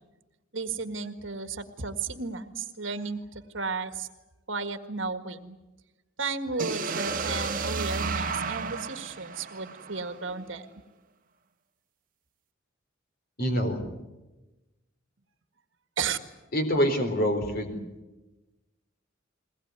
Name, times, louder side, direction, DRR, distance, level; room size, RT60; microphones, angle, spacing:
voice 1, 0.5-4.1 4.5-5.6 6.2-10.7 16.0-16.2, right 4 dB, 65° right, 9 dB, 1.8 m, -33 dB
sound 1, 6.6-10.5, right 4 dB, 45° right, 1.4 m, -32 dB
voice 2, 13.4-13.8 16.5-17.8, equal, 50° left, 6 dB, 4.0 m, -25 dB
22.0 x 20.0 x 9.7 m, 1.1 s
head